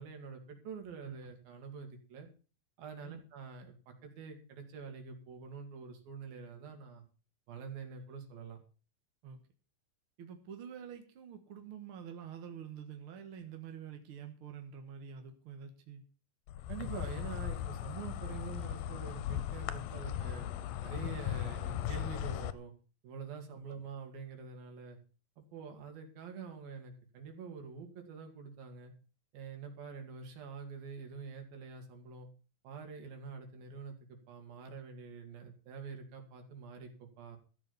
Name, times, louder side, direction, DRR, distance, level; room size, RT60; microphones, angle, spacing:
voice 1, 0.0-2.3 2.8-7.0 7.5-8.6 16.7-20.5 20.8-22.7 23.0-25.0 25.4-28.9 29.3-32.3 32.6-37.4, right 5 dB, 85° right, 4 dB, 4.1 m, -46 dB
voice 2, 10.2-16.0 23.7-23.8, right 8 dB, 55° right, 5 dB, 1.7 m, -47 dB
Insect, 16.5-22.5, left 11 dB, 90° left, 2.5 m, -38 dB
14.0 x 7.5 x 7.0 m, 0.37 s
omnidirectional pair, 4.0 m